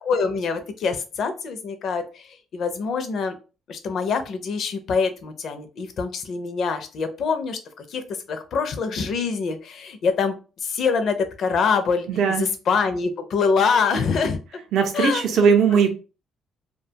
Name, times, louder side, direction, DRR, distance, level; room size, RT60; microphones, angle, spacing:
voice 1, 0.0-3.3 3.7-7.6 7.9-8.0 8.3-12.1 12.4-14.4 14.9-15.2, left 5 dB, 50° left, 8 dB, 0.5 m, -24 dB
voice 2, 12.1-12.5 14.7-15.9, right 6 dB, 65° right, 4 dB, 0.5 m, -19 dB
2.4 x 2.2 x 2.7 m, 0.33 s
cardioid pair, 140°, 0 cm